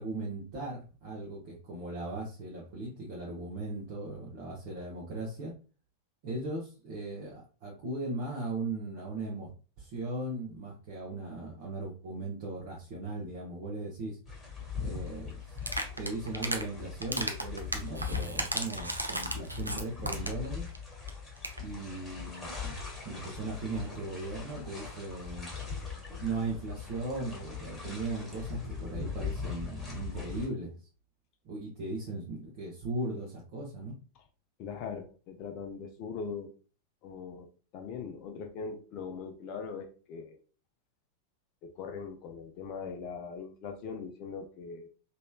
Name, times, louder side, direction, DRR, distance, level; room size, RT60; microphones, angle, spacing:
voice 1, 0.0-5.5 6.2-9.5 9.8-14.2 14.8-20.7 21.6-25.5 26.2-30.7 31.4-33.9, right 2 dB, 45° right, -4 dB, 1.0 m, -38 dB
sound 1, 14.2-30.5, left 6 dB, 10° left, 1.3 m, -40 dB
sound 2, 15.6-16.6 17.0-20.5 20.7-20.8 21.1-21.2 21.4-21.6, right 1 dB, 85° right, 0.4 m, -34 dB
voice 2, 34.6-36.5 37.0-40.4 41.6-44.9, left 5 dB, 40° left, 4 dB, 0.5 m, -41 dB
3.1 x 2.9 x 2.3 m, 0.36 s
figure-of-eight pair, 90°, 0 cm